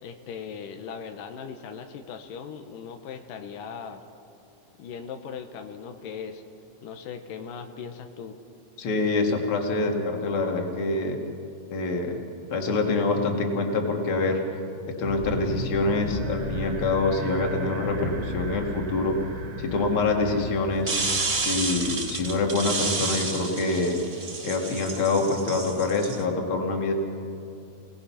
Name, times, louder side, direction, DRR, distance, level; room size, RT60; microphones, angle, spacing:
voice 1, 0.0-4.0 4.8-6.4 6.8-8.4, left 6 dB, 85° left, 6 dB, 2.7 m, -39 dB
voice 2, 8.8-11.2 11.7-12.2 12.5-14.4 14.8-19.2 19.6-20.9 21.4-24.0 24.4-26.9, left 3 dB, 45° left, 2 dB, 2.7 m, -25 dB
sound 1, 15.0-23.1, right 1 dB, 50° right, 2.3 m, -36 dB
sound 2, 20.9-26.2, right 3 dB, 30° right, 2.5 m, -30 dB
29.0 x 18.5 x 5.8 m, 2.7 s
omnidirectional pair, 3.8 m